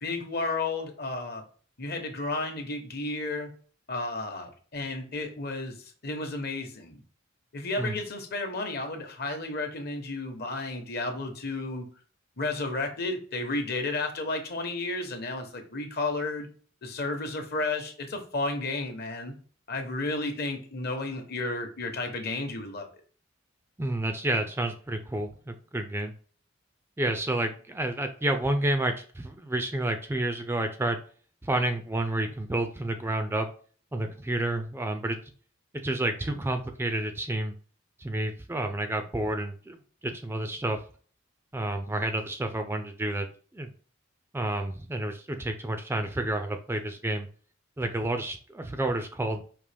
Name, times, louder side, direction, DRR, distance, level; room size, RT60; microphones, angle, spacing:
voice 1, 0.0-1.4 1.8-3.5 3.9-7.0 7.5-11.9 12.4-16.5 16.8-19.3 19.7-22.9, left 2 dB, 50° left, 5 dB, 0.9 m, -32 dB
voice 2, 23.8-26.1 27.0-31.0 31.4-33.5 33.9-35.2 35.8-37.5 38.0-39.8 40.0-40.8 41.5-43.3 43.5-43.7 44.3-47.3 47.8-49.4, right 1 dB, 10° right, 6 dB, 0.3 m, -30 dB
5.2 x 2.9 x 3.3 m, 0.42 s
head